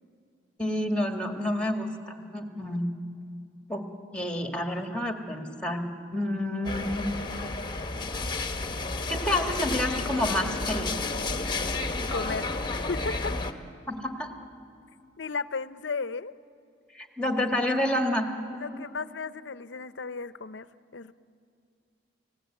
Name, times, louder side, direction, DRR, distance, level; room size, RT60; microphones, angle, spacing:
voice 1, 0.6-2.9 3.7-3.8 4.1-7.1 9.1-10.9 13.9-14.3 16.9-18.3, left 1 dB, 5° left, 4 dB, 1.9 m, -29 dB
sound 1, 6.6-13.5, left 3 dB, 25° left, 1.2 m, -31 dB
voice 2, 12.1-12.5 12.9-13.4 15.2-16.3 18.5-21.1, left 4 dB, 70° left, 14 dB, 0.7 m, -34 dB
30.0 x 17.5 x 8.9 m, 2.5 s
head